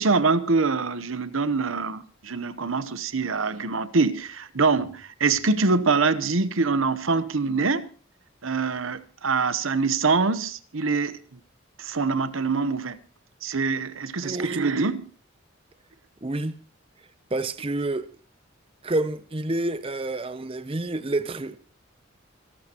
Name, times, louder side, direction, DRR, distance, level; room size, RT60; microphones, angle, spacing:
voice 1, 0.0-7.9 8.4-11.4 11.8-13.0 13.4-15.1, right 4 dB, 75° right, 0.9 m, -24 dB
voice 2, 14.2-14.6 16.2-16.6 17.3-18.1 18.8-21.6, right 2 dB, 25° right, 0.6 m, -28 dB
27.0 x 12.5 x 3.0 m
head